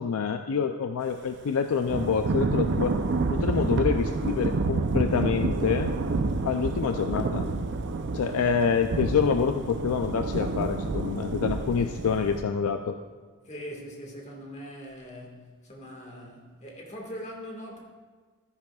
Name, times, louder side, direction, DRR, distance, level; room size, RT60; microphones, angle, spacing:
voice 1, 0.0-2.9 3.3-6.0 6.4-7.5 8.1-13.0, left 6 dB, 70° left, 0.4 m, -27 dB
Thunder / Rain, 1.9-12.4, right 3 dB, 50° right, 0.5 m, -29 dB
voice 2, 13.4-17.8, equal, 30° left, 1.7 m, -41 dB
13.0 x 10.5 x 2.3 m
head